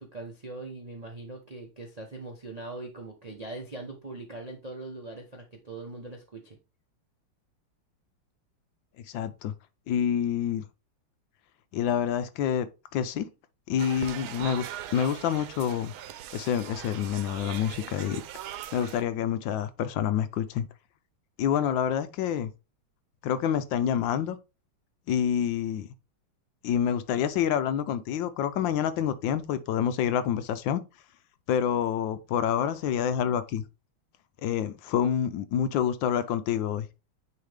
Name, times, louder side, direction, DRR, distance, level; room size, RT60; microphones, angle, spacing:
voice 1, 0.0-6.6, right 2 dB, 45° right, 0.5 m, -41 dB
voice 2, 9.1-9.5 9.9-10.6 11.7-13.3 13.7-15.9 16.3-18.2 18.7-20.6 21.4-22.5 23.2-24.4 25.1-25.9 26.6-30.8 31.5-33.6 34.4-36.9, left 9 dB, 75° left, 1.2 m, -27 dB
sound 1, 13.8-19.0, right 11 dB, 85° right, 1.5 m, -40 dB
9.4 x 3.3 x 3.4 m
omnidirectional pair, 2.2 m